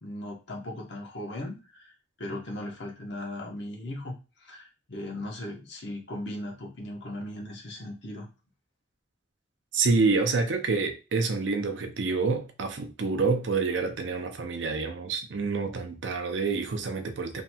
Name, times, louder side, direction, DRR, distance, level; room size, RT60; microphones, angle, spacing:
voice 1, 0.0-1.9 2.2-8.3, left 1 dB, 60° left, 0.9 m, -38 dB
voice 2, 9.7-17.4, right 4 dB, 70° right, 0.5 m, -27 dB
2.8 x 2.7 x 2.2 m
head